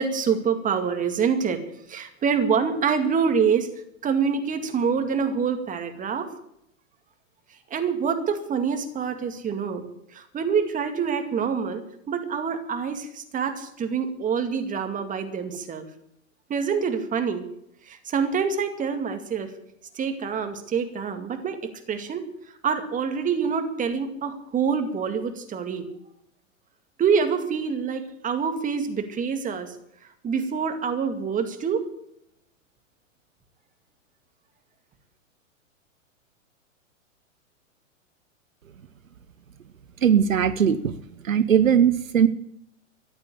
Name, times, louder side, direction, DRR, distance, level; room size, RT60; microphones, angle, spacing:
voice 1, 0.0-1.6 1.9-3.7 4.0-6.3 7.7-9.8 10.1-15.9 16.5-17.4 17.9-19.5 20.0-22.3 22.6-25.9 27.0-29.7 30.2-31.9, right 6 dB, 20° right, 7 dB, 2.2 m, -26 dB
voice 2, 40.0-41.0 41.2-42.3, right 8 dB, 80° right, 15 dB, 1.0 m, -19 dB
14.5 x 10.5 x 8.5 m, 0.76 s
hypercardioid pair, 110°, 40 cm